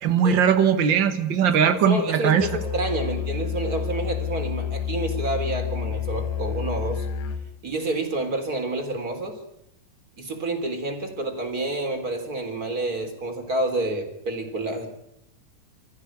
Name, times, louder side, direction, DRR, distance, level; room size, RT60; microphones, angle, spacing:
voice 1, 0.0-2.5, right 7 dB, 80° right, 9 dB, 1.0 m, -20 dB
voice 2, 1.6-7.1 7.6-9.4 10.2-14.9, right 2 dB, 25° right, 5 dB, 3.8 m, -29 dB
Musical instrument, 2.4-7.5, left 8 dB, 70° left, 3.4 m, -29 dB
27.0 x 14.5 x 9.5 m, 0.79 s
omnidirectional pair, 4.2 m